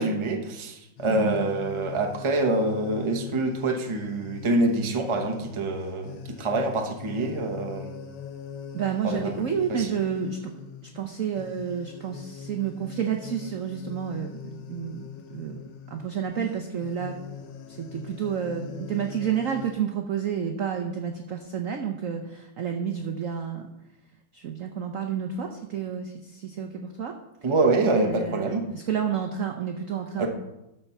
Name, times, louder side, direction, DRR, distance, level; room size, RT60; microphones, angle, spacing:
voice 1, 0.0-8.0 9.0-9.3 9.7-9.9 27.4-28.6 30.2-30.3, right 2 dB, 25° right, 3 dB, 0.6 m, -26 dB
sound 1, 1.0-19.7, left 8 dB, 70° left, 1.3 m, -42 dB
voice 2, 1.1-1.5 8.7-10.5 10.9-17.2 17.7-23.7 24.3-27.2 27.8-30.3, right 8 dB, 65° right, 4 dB, 0.8 m, -30 dB
13.0 x 4.4 x 5.5 m, 0.91 s
omnidirectional pair, 2.2 m